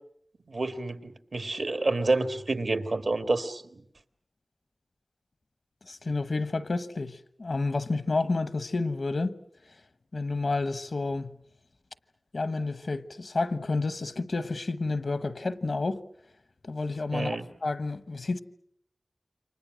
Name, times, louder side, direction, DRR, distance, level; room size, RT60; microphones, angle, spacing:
voice 1, 0.5-3.6 17.1-17.5, right 3 dB, 80° right, 1.7 m, -28 dB
voice 2, 5.9-9.3 10.1-11.4 12.3-16.0 16.6-18.4, left 3 dB, 80° left, 1.0 m, -30 dB
29.5 x 25.0 x 6.3 m
wide cardioid pair, 65°, 0 cm